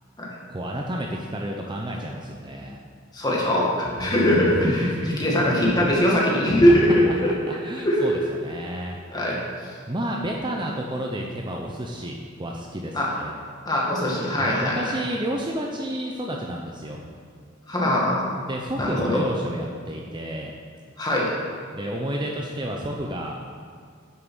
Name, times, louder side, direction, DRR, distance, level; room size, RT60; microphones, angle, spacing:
voice 1, 0.5-2.8 4.0-6.0 7.1-9.0 9.9-13.4 14.4-17.0 18.4-20.5 21.7-23.4, right 1 dB, 20° right, 0 dB, 0.7 m, -31 dB
voice 2, 3.1-4.9 5.2-7.3 7.8-8.1 9.1-9.7 12.9-13.1 13.6-14.9 17.7-18.3 18.8-19.2 21.0-21.3, equal, 20° left, -4 dB, 2.0 m, -21 dB
9.1 x 6.9 x 6.3 m, 2.2 s
head